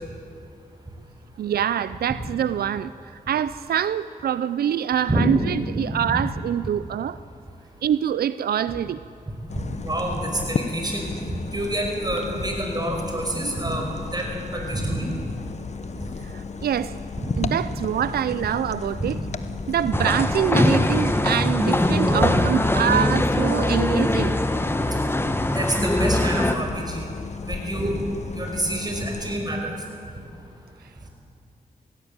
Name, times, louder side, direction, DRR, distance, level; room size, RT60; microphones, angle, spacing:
voice 1, 1.4-2.9 3.3-7.2 7.8-9.0 16.3-17.0 17.4-19.2 19.7-24.4, right 9 dB, 85° right, 15 dB, 0.4 m, -25 dB
voice 2, 9.3-15.1 16.0-16.1 17.2-17.5 19.0-19.1 21.9-22.3 25.5-27.1 27.4-28.0 28.3-29.8, right 1 dB, 25° right, 1 dB, 5.3 m, -27 dB
sound 1, 9.5-29.4, left 5 dB, 45° left, 1.0 m, -35 dB
sound 2, 19.9-26.5, left 1 dB, 15° left, 1.3 m, -22 dB
18.0 x 16.0 x 8.8 m, 2.5 s
cardioid pair, 70°, 16 cm